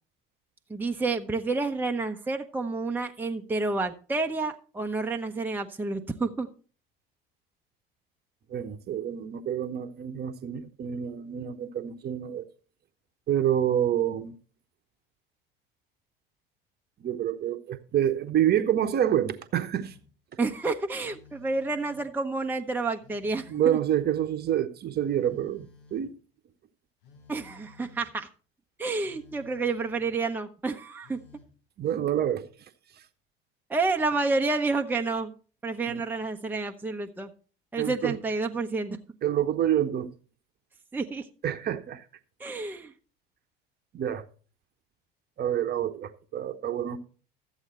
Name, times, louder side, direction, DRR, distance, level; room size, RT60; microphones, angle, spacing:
voice 1, 0.7-6.5 20.4-23.8 27.3-28.3 28.8-31.2 33.7-35.3 35.6-37.3 37.7-39.0 40.9-41.3 42.4-42.9, right 3 dB, 5° right, 0.8 m, -29 dB
voice 2, 8.5-12.5 13.3-14.4 17.0-19.9 23.5-26.2 31.8-32.5 35.9-36.0 37.8-38.2 39.2-40.1 41.4-42.0 43.9-44.2 45.4-47.0, right 10 dB, 35° right, 1.0 m, -27 dB
Telephone, 19.7-20.2 21.0-22.2 23.0-24.2 25.0-26.2 27.0-28.1 29.0-30.3 31.0-31.6, left 4 dB, 65° left, 1.6 m, -55 dB
13.0 x 8.1 x 4.3 m
figure-of-eight pair, 65°, 29 cm